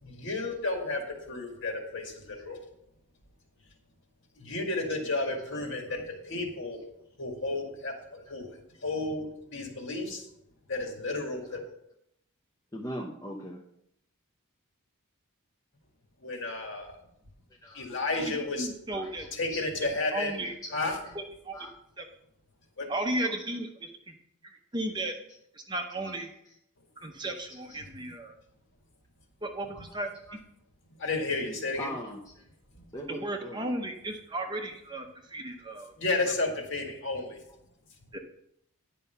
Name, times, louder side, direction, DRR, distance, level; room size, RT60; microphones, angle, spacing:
voice 1, 0.0-1.0 1.3-2.6 4.4-6.8 7.2-8.5 8.8-10.2 10.7-11.6 16.2-16.9 17.7-18.7 19.3-20.3 20.7-20.9 22.8-22.9 31.0-31.9 36.0-37.4, left 2 dB, 55° left, 2 dB, 2.0 m, -32 dB
voice 2, 1.6-2.0 5.2-6.2 6.7-7.1 8.2-8.3 11.1-11.2 11.4-11.8 12.7-13.6 17.6-17.9 18.9-19.6 20.3-21.1 21.5-21.7 23.2-23.9 25.1-25.4 26.0-26.6 27.5-27.8 29.9-30.0 30.3-30.4 31.7-32.5 32.9-33.7 37.1-37.6, equal, 15° left, -1 dB, 0.7 m, -44 dB
voice 3, 18.1-19.3 20.1-20.5 21.4-21.6 22.0-22.1 22.9-24.1 24.4-25.1 25.5-26.3 27.0-28.3 29.4-30.1 33.1-35.9 38.1-38.2, right 1 dB, 20° right, 4 dB, 0.8 m, -35 dB
10.0 x 5.4 x 5.6 m, 0.75 s
head